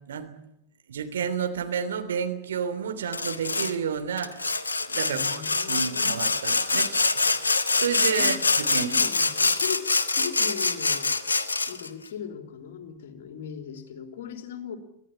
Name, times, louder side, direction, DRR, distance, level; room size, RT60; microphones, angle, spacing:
voice 1, 0.9-4.4 4.9-8.9, right 7 dB, 65° right, 8 dB, 3.1 m, -31 dB
Sawing, 3.1-3.7 4.2-11.9, left 3 dB, 75° left, 1.5 m, -25 dB
voice 2, 5.0-6.2 8.2-8.3 8.8-11.2 11.7-14.8, left 8 dB, 55° left, 7 dB, 3.4 m, -38 dB
24.5 x 16.0 x 9.9 m, 0.76 s
figure-of-eight pair, 90°, 0 cm